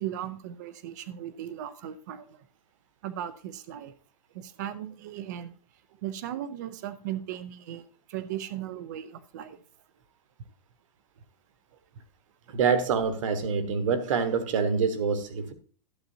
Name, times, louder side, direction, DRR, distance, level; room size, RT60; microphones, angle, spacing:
voice 1, 0.0-2.5 3.0-3.9 4.3-5.5 6.0-9.6, right 11 dB, 30° right, 14 dB, 0.5 m, -37 dB
voice 2, 12.5-15.5, right 5 dB, 50° right, 9 dB, 1.3 m, -26 dB
12.0 x 8.0 x 2.7 m, 0.41 s
supercardioid pair, 180°, 20 cm